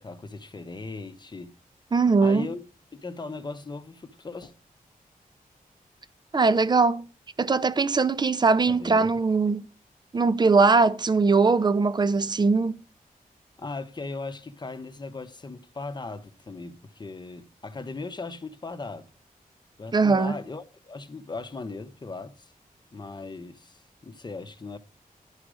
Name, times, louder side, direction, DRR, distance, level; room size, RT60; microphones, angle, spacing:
voice 1, 0.0-1.5 2.2-2.6 2.9-4.5 8.7-9.1 13.6-19.1 19.8-22.5 22.9-24.8, left 3 dB, 30° left, 0.9 m, -38 dB
voice 2, 1.9-2.5 6.3-7.1 7.4-9.7 10.1-12.8 19.9-20.4, right 4 dB, 30° right, 0.6 m, -21 dB
11.5 x 5.0 x 6.3 m
wide cardioid pair, 155°, 15 cm